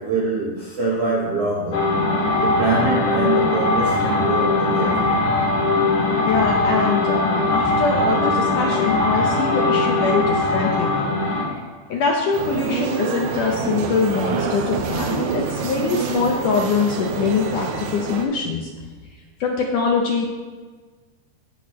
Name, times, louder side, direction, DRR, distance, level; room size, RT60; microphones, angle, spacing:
voice 1, 0.0-1.9 2.4-5.2, right 3 dB, 70° right, -5 dB, 1.5 m, -24 dB
sound 1, 1.7-11.5, left 2 dB, 50° left, 2.5 m, -20 dB
voice 2, 6.2-11.1 11.9-18.7 19.4-20.3, left 4 dB, 75° left, 0 dB, 2.0 m, -23 dB
sound 2, 12.3-18.2, right 5 dB, 85° right, 2.8 m, -26 dB
16.5 x 5.9 x 3.1 m, 1.4 s
omnidirectional pair, 4.5 m